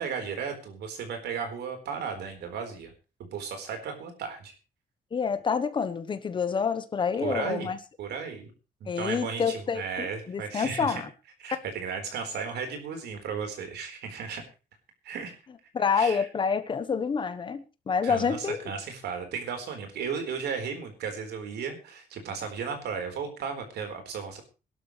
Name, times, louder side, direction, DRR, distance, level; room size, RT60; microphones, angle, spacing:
voice 1, 0.0-2.9 3.3-4.5 7.2-7.7 8.0-8.5 8.8-11.0 11.4-14.4 15.0-15.3 15.9-16.3 18.0-24.4, right 6 dB, 80° right, 4.2 m, -35 dB
voice 2, 5.1-7.8 8.9-11.0 15.7-18.7, left 6 dB, 30° left, 1.0 m, -28 dB
21.5 x 12.0 x 3.2 m
cardioid pair, 175°, 17 cm